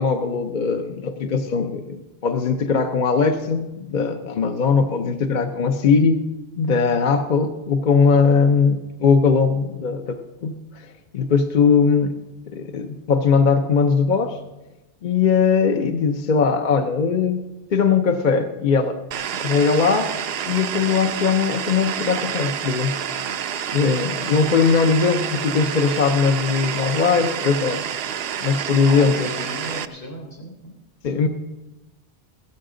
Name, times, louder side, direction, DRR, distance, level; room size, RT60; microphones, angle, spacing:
voice 1, 0.0-6.2 6.6-12.1 12.5-14.4 15.0-17.4 17.7-19.0 19.4-20.1 20.4-23.0 23.7-27.8 28.4-29.3 31.0-31.3, left 5 dB, 50° left, 6 dB, 0.8 m, -20 dB
sound 1, 19.1-29.9, right 8 dB, 70° right, 0.8 m, -28 dB
voice 2, 28.9-30.7, equal, 75° left, 1 dB, 3.8 m, -34 dB
16.0 x 13.0 x 3.8 m, 1.0 s
omnidirectional pair, 1.1 m